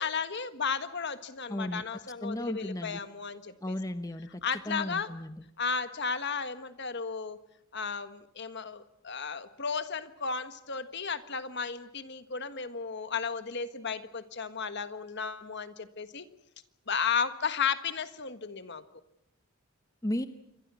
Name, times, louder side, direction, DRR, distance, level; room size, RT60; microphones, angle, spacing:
voice 1, 0.0-3.8 4.4-5.1 5.6-7.4 7.7-16.3 16.9-18.8, left 6 dB, 50° left, 11 dB, 1.5 m, -34 dB
voice 2, 1.5-1.8 2.2-3.0 3.6-5.4 20.0-20.3, left 1 dB, 15° left, 9 dB, 0.9 m, -35 dB
28.0 x 24.0 x 6.3 m, 0.81 s
head